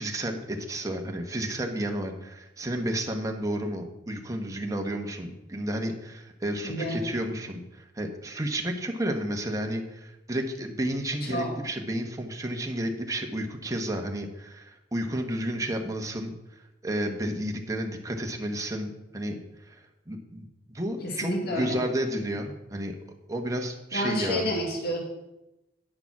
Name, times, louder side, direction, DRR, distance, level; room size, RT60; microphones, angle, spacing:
voice 1, 0.0-16.3 16.8-19.4 19.7-19.8 20.1-23.0 23.3-24.5, right 1 dB, 20° right, 2 dB, 1.1 m, -31 dB
voice 2, 6.6-7.0 11.2-11.5 21.0-21.8 23.9-25.0, left 1 dB, 55° left, 0 dB, 2.0 m, -29 dB
9.8 x 6.8 x 6.0 m, 0.93 s
head